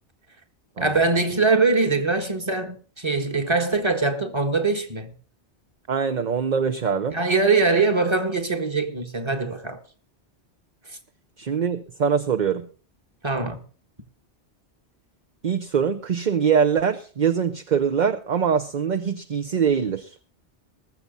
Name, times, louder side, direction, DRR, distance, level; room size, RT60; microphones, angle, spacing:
voice 1, 0.8-5.1 7.1-9.8 10.9-11.0 13.2-13.6, right 3 dB, 25° right, 1.7 m, -22 dB
voice 2, 5.9-7.2 11.4-12.7 15.4-20.1, right 7 dB, 45° right, 0.8 m, -23 dB
20.0 x 7.3 x 5.3 m
omnidirectional pair, 1.1 m